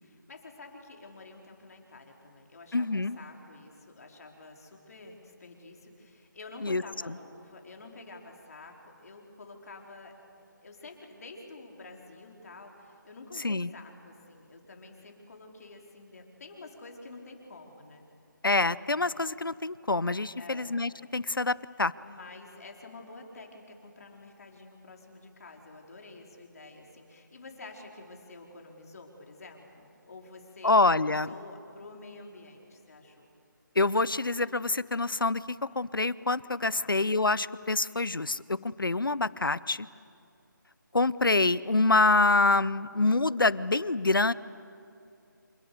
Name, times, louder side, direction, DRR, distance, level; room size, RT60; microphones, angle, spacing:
voice 1, 0.0-18.0 20.4-20.8 22.0-33.3 36.7-36.9, left 3 dB, 45° left, 2 dB, 4.3 m, -49 dB
voice 2, 2.7-3.2 6.6-7.2 13.4-13.7 18.4-21.9 30.6-31.3 33.8-35.4 35.8-39.9 40.9-44.3, left 3 dB, 85° left, 19 dB, 0.8 m, -26 dB
28.0 x 27.0 x 7.0 m, 2.7 s
figure-of-eight pair, 155°, 11 cm